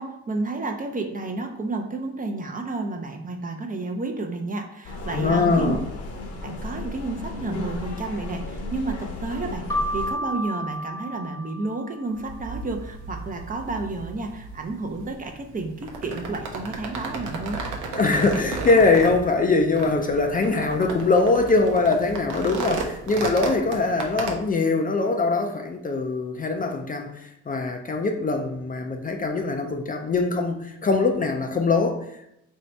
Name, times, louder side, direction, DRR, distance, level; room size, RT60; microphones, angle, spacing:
voice 1, 0.0-5.8 6.4-17.6, right 3 dB, 30° right, 4 dB, 0.6 m, -31 dB
sound 1, 4.8-10.1, left 2 dB, 55° left, 0.8 m, -34 dB
voice 2, 5.1-5.8 17.9-32.3, left 3 dB, 30° left, 4 dB, 0.4 m, -22 dB
Keyboard (musical), 9.7-12.2, equal, 10° left, 0.8 m, -31 dB
sound 2, 12.1-24.3, right 3 dB, 80° right, 0.8 m, -34 dB
3.0 x 2.8 x 4.4 m, 0.80 s
cardioid pair, 90°, 30 cm